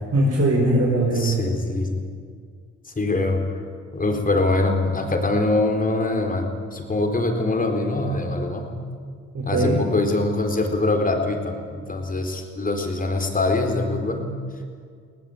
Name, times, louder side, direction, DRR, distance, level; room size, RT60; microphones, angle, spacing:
voice 1, 0.1-1.4 9.3-9.8, right 1 dB, 55° right, -3 dB, 6.0 m, -20 dB
voice 2, 1.2-2.0 2.9-3.6 3.9-8.8 9.4-14.3, left 2 dB, 30° left, 3 dB, 4.2 m, -23 dB
22.0 x 18.5 x 9.0 m, 2.1 s
cardioid pair, 90°, 30 cm